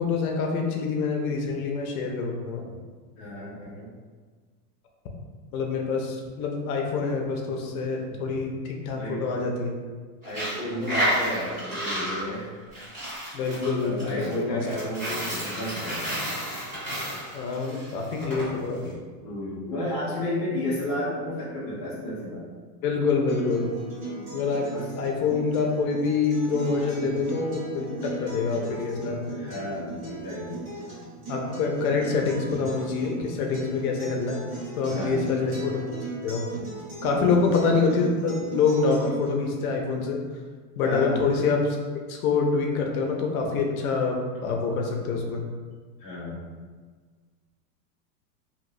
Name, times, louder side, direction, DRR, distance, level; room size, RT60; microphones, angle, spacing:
voice 1, 0.0-2.6 5.5-9.8 13.3-14.6 17.3-19.0 22.8-23.7 24.3-24.7 25.0-29.4 31.3-34.4 34.8-35.8 36.2-36.5 37.0-40.2 40.8-41.8 42.1-45.4, left 4 dB, 65° left, 1 dB, 0.7 m, -26 dB
voice 2, 3.2-3.9 8.9-9.2 10.2-12.5 13.8-16.2 19.2-22.4 24.7-24.9 29.4-30.7 34.9-35.3 37.1-37.7 40.8-41.2 46.0-46.4, left 1 dB, 20° left, -11 dB, 0.3 m, -32 dB
Coin (dropping), 10.2-18.4, equal, 15° right, 1.1 m, -31 dB
Acoustic guitar, 23.3-39.3, right 3 dB, 40° right, 1.4 m, -38 dB
3.0 x 2.9 x 2.6 m, 1.5 s
supercardioid pair, 170°, 48 cm